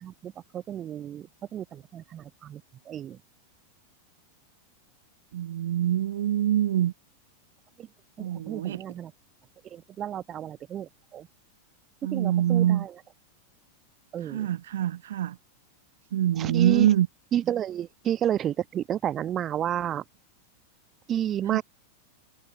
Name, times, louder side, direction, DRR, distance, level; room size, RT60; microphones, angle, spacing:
voice 1, 0.0-2.6 2.9-3.2 7.8-7.9 8.2-9.1 9.6-11.3 12.1-12.9 14.1-14.5 16.4-16.9 17.3-20.0 21.1-21.6, right 10 dB, 30° right, 1.1 m, -31 dB
voice 2, 5.3-6.9 8.2-8.8 12.0-12.9 14.2-15.4 16.1-17.1 21.5-21.6, right 11 dB, 60° right, 0.3 m, -25 dB
figure-of-eight pair, 90°, 0 cm